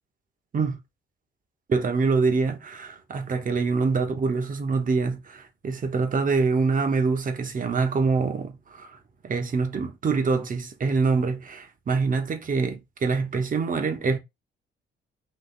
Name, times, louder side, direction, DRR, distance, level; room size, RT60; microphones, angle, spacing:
voice 1, 1.7-9.0 9.2-14.2, right 4 dB, 45° right, 1.1 m, -25 dB
4.0 x 2.7 x 3.9 m
cardioid pair, 90°, 20 cm